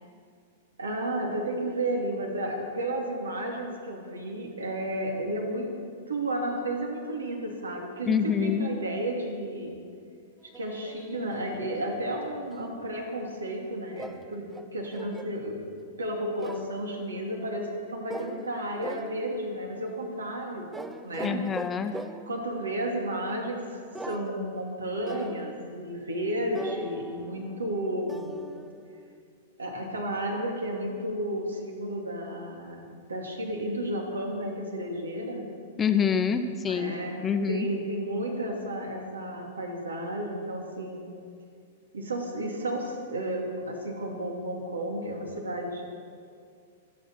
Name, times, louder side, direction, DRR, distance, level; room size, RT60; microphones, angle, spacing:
voice 1, 0.8-5.7 6.1-9.8 10.4-15.6 16.0-20.7 21.0-21.4 22.3-28.3 29.6-35.4 36.7-41.1 41.9-45.8, right 1 dB, 75° right, 1 dB, 2.4 m, -32 dB
voice 2, 8.1-8.7 21.2-22.0 35.8-37.0 37.2-37.7, left 7 dB, 20° left, 7 dB, 1.0 m, -26 dB
sound 1, 10.5-12.8 14.0-15.4 16.4-16.9 18.1-18.6 18.8-19.5 20.7-22.4 23.9-24.7 25.1-25.7 26.5-29.2, right 2 dB, 5° right, 0.7 m, -41 dB
26.5 x 9.2 x 4.6 m, 2.2 s
figure-of-eight pair, 100°, 0 cm